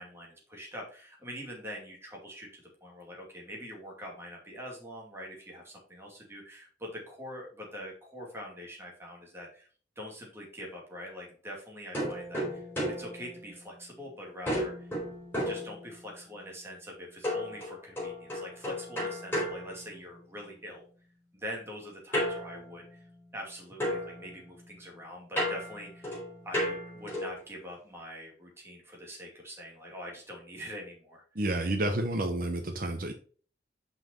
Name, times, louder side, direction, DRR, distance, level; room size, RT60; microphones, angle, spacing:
voice 1, 0.0-9.7 10.0-14.9 15.4-20.9 21.3-23.0 23.3-26.1 26.4-31.2, equal, 15° right, -1 dB, 2.5 m, -44 dB
sound 1, 11.9-14.0 14.5-16.3 17.2-20.5 22.1-23.5 23.8-27.5, equal, 10° left, 3.9 m, -35 dB
voice 2, 31.3-33.1, right 1 dB, 50° right, 4 dB, 0.9 m, -30 dB
5.9 x 5.6 x 4.4 m, 0.42 s
head